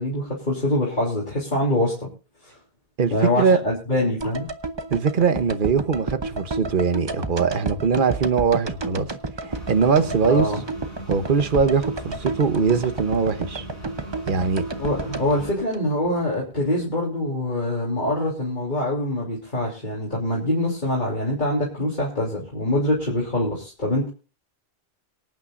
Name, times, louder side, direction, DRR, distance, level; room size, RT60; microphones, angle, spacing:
voice 1, 0.0-2.1 3.1-4.5 10.3-10.6 14.8-24.1, left 1 dB, 45° left, -3 dB, 3.5 m, -24 dB
voice 2, 3.0-3.6 4.9-9.1 9.5-10.5 11.1-13.6 14.3-14.6, right 5 dB, 50° right, 10 dB, 1.2 m, -21 dB
sound 1, 4.2-16.4 16.6-16.7, right 3 dB, 25° right, 0.8 m, -32 dB
sound 2, 9.5-15.5, right 1 dB, 90° right, 7.5 m, -39 dB
24.5 x 9.2 x 2.6 m, 0.34 s
omnidirectional pair, 1.1 m